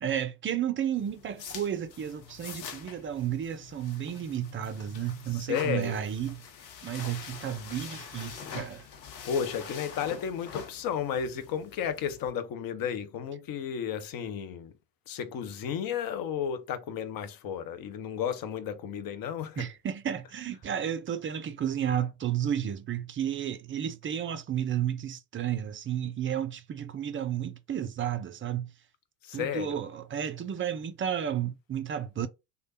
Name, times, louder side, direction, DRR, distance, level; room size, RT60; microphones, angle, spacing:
voice 1, 0.0-6.4 6.8-8.8 19.6-28.7 29.3-32.3, right 9 dB, 25° right, 0.5 m, -32 dB
sound 1, 1.0-12.3, left 7 dB, 80° left, 0.9 m, -45 dB
voice 2, 5.3-6.0 9.2-14.7 15.1-19.7 29.2-29.8, left 8 dB, 45° left, 0.8 m, -33 dB
3.2 x 2.2 x 4.0 m
hypercardioid pair, 60°, 49 cm